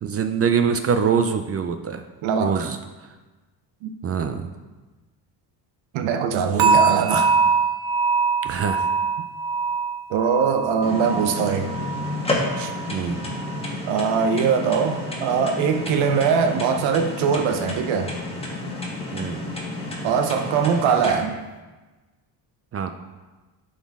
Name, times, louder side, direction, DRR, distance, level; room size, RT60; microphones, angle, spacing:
voice 1, 0.0-2.0 2.4-2.8 4.0-4.5 8.4-8.8 12.9-13.2 19.1-19.4 22.7-22.9, right 6 dB, 35° right, 8 dB, 0.4 m, -23 dB
voice 2, 2.2-2.7 3.8-3.9 5.9-7.4 10.1-11.8 12.6-12.7 13.9-18.1 20.0-21.4, right 6 dB, 85° right, 7 dB, 0.8 m, -22 dB
sound 1, 6.6-13.7 14.0-14.4 14.8-15.0, right 5 dB, 50° right, 0.8 m, -24 dB
sound 2, 10.8-21.1, left 2 dB, 15° left, 1.3 m, -31 dB
11.0 x 4.0 x 3.6 m, 1.2 s
cardioid pair, 120°, 45 cm